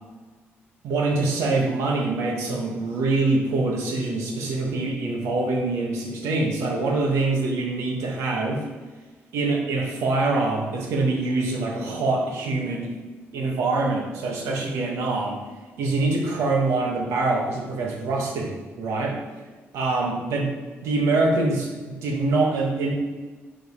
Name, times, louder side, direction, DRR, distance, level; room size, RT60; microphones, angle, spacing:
voice 1, 0.8-8.6 9.3-12.9 13.3-15.4 15.8-19.2 19.7-20.5 20.8-22.9, right 3 dB, 75° right, 0 dB, 1.3 m, -24 dB
5.0 x 3.9 x 5.3 m, 1.3 s
cardioid pair, 180°, 5 cm